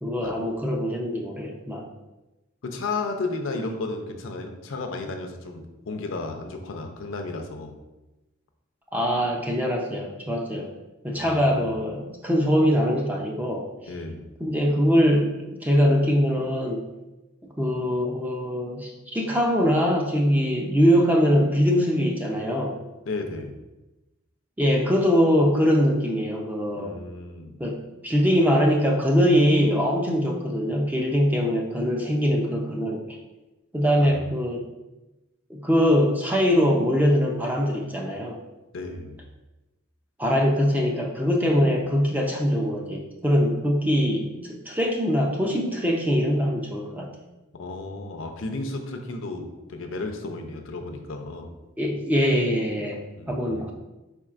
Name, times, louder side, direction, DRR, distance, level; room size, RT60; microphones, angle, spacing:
voice 1, 0.0-1.9 8.9-10.7 11.0-13.7 14.4-16.8 17.6-22.8 24.6-27.0 27.6-33.2 33.7-34.7 35.5-38.4 40.2-47.1 51.8-53.0 53.3-53.7, equal, 10° right, -1 dB, 0.4 m, -22 dB
voice 2, 2.6-7.7 11.1-11.7 13.9-14.3 23.1-23.6 26.7-27.6 34.0-34.2 38.7-39.2 47.5-51.5 53.1-53.7, left 3 dB, 65° left, 4 dB, 0.5 m, -33 dB
4.5 x 4.4 x 2.4 m, 1.0 s
head